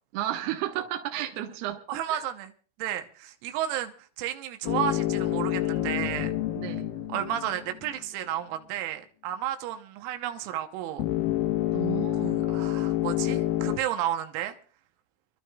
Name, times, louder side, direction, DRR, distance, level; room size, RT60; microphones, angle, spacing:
voice 1, 0.1-1.8 2.1-2.2 6.6-6.9 11.7-12.4, right 13 dB, 65° right, 2.7 m, -33 dB
voice 2, 1.9-2.5 2.8-6.3 7.1-11.0 12.2-14.6, right 11 dB, 90° right, 3.7 m, -32 dB
sound 1, 4.7-8.0 11.0-13.8, left 14 dB, 85° left, 3.7 m, -28 dB
30.0 x 12.0 x 2.3 m
omnidirectional pair, 5.9 m